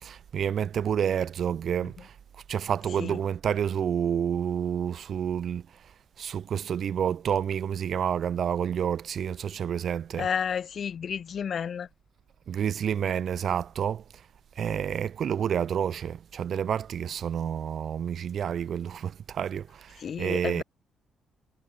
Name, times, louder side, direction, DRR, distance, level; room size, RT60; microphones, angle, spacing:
voice 1, 0.0-2.1 2.5-5.6 6.2-10.3 12.5-14.0 14.6-20.6, right 8 dB, 60° right, 3.1 m, -29 dB
voice 2, 10.2-11.9 20.0-20.6, left 7 dB, 55° left, 1.9 m, -31 dB
cardioid pair, 90°, 0 cm